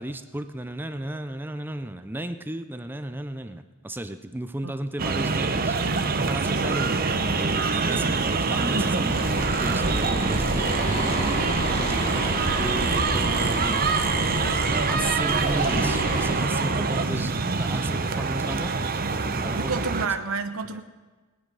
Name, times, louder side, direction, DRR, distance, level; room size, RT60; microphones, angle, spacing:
voice 1, 0.0-5.8 6.3-9.2 9.6-13.9 14.9-20.0, right 1 dB, 10° right, 9 dB, 0.5 m, -34 dB
sound 1, 5.0-20.1, right 4 dB, 45° right, 0.9 m, -25 dB
voice 2, 6.5-7.3 17.3-17.5 19.6-20.8, right 4 dB, 75° right, 8 dB, 0.9 m, -31 dB
sound 2, 9.1-16.3, right 1 dB, 35° left, 2.9 m, -30 dB
19.0 x 10.0 x 5.4 m, 1.3 s
head